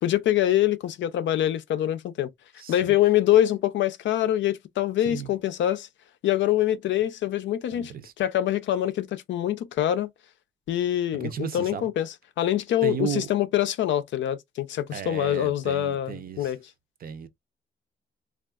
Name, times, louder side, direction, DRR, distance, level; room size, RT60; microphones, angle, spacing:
voice 1, 0.0-2.3 2.7-5.9 6.2-7.9 8.2-10.1 10.7-16.6, left 12 dB, 70° left, 0.5 m, -24 dB
voice 2, 2.6-2.9 5.0-5.3 7.7-8.1 11.2-11.9 12.8-13.3 14.9-16.5 17.0-17.3, right 8 dB, 50° right, 0.6 m, -34 dB
3.5 x 2.4 x 2.3 m
cardioid pair, 130°, 20 cm